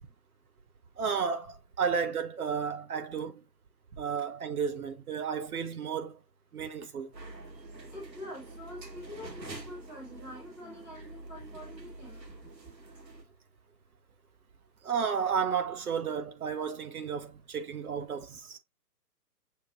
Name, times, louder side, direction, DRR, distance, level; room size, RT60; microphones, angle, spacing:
voice 1, 1.0-3.4 4.0-6.2 6.5-7.1 14.8-18.6, right 6 dB, 60° right, 1.0 m, -32 dB
sound 1, 7.1-13.2, right 2 dB, 85° right, 1.3 m, -46 dB
voice 2, 7.9-12.2 12.6-12.7, left 1 dB, 5° right, 0.7 m, -45 dB
6.6 x 2.2 x 2.7 m
figure-of-eight pair, 135°, 49 cm